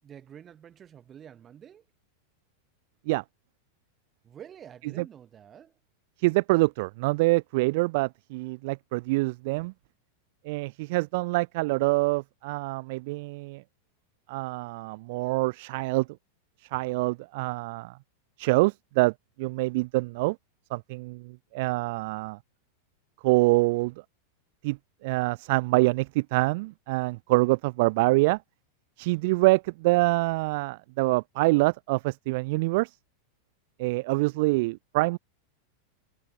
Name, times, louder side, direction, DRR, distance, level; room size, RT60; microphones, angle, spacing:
voice 1, 0.0-1.9 4.2-5.8, right 9 dB, 25° right, 7.5 m, -48 dB
voice 2, 6.2-9.7 10.4-13.6 14.3-16.1 16.6-18.0 18.4-20.4 20.7-22.4 23.2-23.9 24.6-28.4 29.0-32.9 33.8-35.2, right 23 dB, 50° right, 0.7 m, -25 dB
figure-of-eight pair, 90°, 0 cm